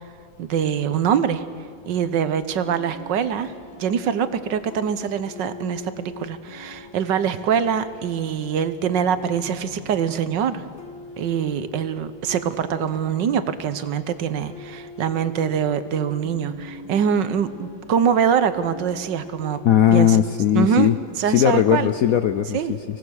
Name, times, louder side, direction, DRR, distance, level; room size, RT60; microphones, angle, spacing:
voice 1, 0.4-1.4 1.8-10.6 11.2-19.6 19.9-20.2 20.5-20.9 21.2-21.9 22.5-22.7, right 7 dB, 70° right, 12 dB, 1.5 m, -24 dB
sound 1, 2.6-22.5, left 3 dB, 85° left, 2.1 m, -43 dB
voice 2, 19.6-21.0 21.3-23.0, left 10 dB, 65° left, 10 dB, 0.9 m, -18 dB
25.0 x 18.0 x 6.4 m, 2.3 s
omnidirectional pair, 2.1 m